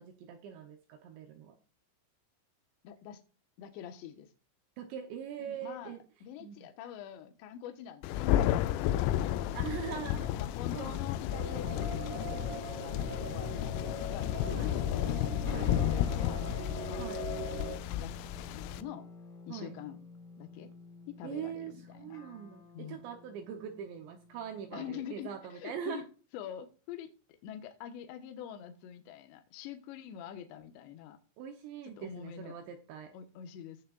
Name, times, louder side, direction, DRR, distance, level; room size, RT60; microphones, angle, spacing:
voice 1, 0.0-1.5 4.8-6.0 6.4-6.6 9.5-10.3 10.7-11.0 14.5-14.8 15.4-15.8 17.0-17.2 19.5-19.8 21.2-26.1 31.4-33.1, right 8 dB, 75° right, 5 dB, 2.7 m, -42 dB
voice 2, 2.8-3.2 3.6-4.3 5.4-10.1 10.4-12.1 12.4-15.5 15.8-19.1 19.5-20.0 20.4-20.7 21.1-22.2 22.7-23.0 24.7-26.0 26.3-27.1 27.4-31.2 31.8-32.5 33.1-33.8, left 10 dB, 70° left, 6 dB, 3.0 m, -46 dB
Thunder, 8.0-18.8, left 12 dB, 90° left, 3.3 m, -32 dB
sound 1, 11.3-17.8, right 2 dB, 55° right, 1.6 m, -41 dB
sound 2, 15.5-25.2, left 4 dB, 55° left, 3.9 m, -52 dB
17.5 x 6.4 x 2.4 m, 0.35 s
omnidirectional pair, 5.9 m